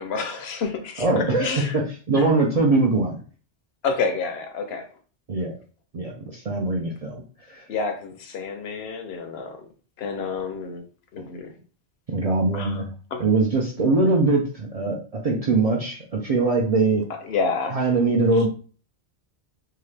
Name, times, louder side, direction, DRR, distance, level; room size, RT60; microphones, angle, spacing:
voice 1, 0.0-1.8 2.2-2.3 3.8-4.9 7.7-9.7 10.0-10.8 11.1-11.5 12.5-12.8 13.1-13.2 17.2-17.8, left 4 dB, 70° left, 6 dB, 0.8 m, -29 dB
voice 2, 1.0-3.2 5.3-5.5 5.9-7.2 7.5-7.6 11.2-11.3 12.1-12.9 13.2-17.0 17.7-18.5, right 3 dB, 55° right, -2 dB, 0.4 m, -22 dB
2.8 x 2.4 x 3.2 m, 0.40 s
omnidirectional pair, 1.2 m